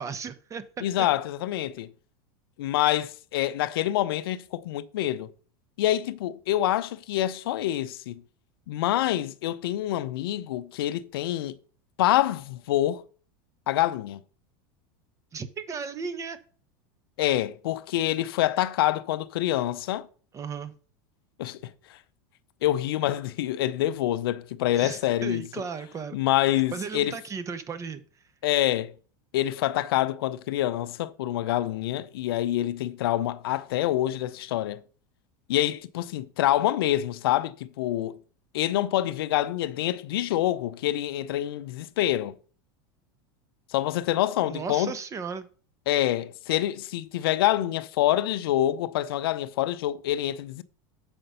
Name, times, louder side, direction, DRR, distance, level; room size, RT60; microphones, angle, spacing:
voice 1, 0.0-1.1 15.3-16.4 20.3-20.7 24.8-26.2 26.7-28.0 44.4-45.5, right 5 dB, 25° right, 0.9 m, -35 dB
voice 2, 0.8-1.9 2.6-5.3 5.8-8.2 8.7-11.6 12.0-13.0 13.7-14.2 17.2-20.1 21.4-21.7 22.6-25.5 26.1-27.1 28.4-28.9 29.3-34.8 35.5-38.2 38.5-42.4 43.7-45.0 45.9-50.6, left 13 dB, 80° left, 0.6 m, -26 dB
7.7 x 5.1 x 5.6 m
supercardioid pair, 120°, 12 cm